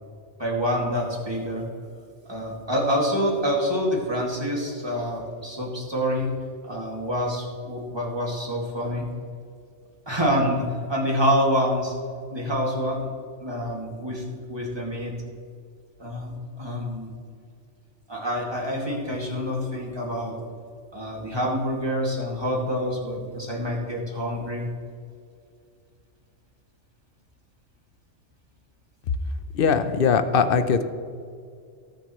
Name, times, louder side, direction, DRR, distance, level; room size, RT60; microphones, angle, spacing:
voice 1, 0.4-1.7 2.3-6.3 6.6-9.1 10.1-11.9 12.3-13.1 13.4-14.2 14.5-15.1 16.0-17.1 18.1-20.3 20.9-24.7, equal, 20° right, -3 dB, 2.3 m, -27 dB
voice 2, 29.5-30.8, left 6 dB, 55° left, 10 dB, 0.8 m, -20 dB
18.5 x 7.0 x 3.1 m, 2.3 s
omnidirectional pair, 1.3 m